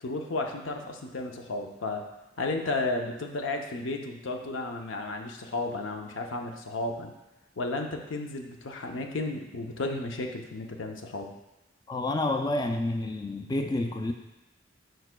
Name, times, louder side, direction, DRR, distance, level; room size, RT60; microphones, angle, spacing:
voice 1, 0.0-2.0 2.4-7.1 7.6-11.3, left 2 dB, 85° left, 3 dB, 0.7 m, -33 dB
voice 2, 11.9-14.1, left 2 dB, 20° left, 4 dB, 0.3 m, -29 dB
9.2 x 4.6 x 2.2 m, 0.95 s
head